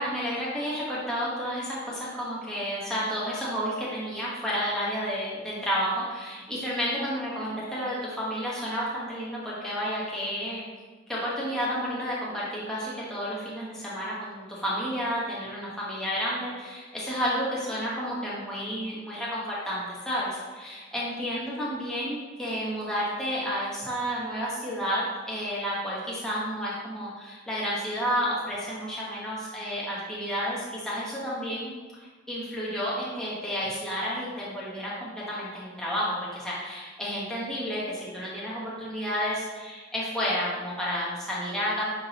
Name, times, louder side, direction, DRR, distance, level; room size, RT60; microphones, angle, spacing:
voice 1, 0.0-10.6 11.1-31.7 32.0-41.9, equal, 5° left, -8 dB, 1.2 m, -31 dB
9.6 x 3.8 x 2.9 m, 1.3 s
head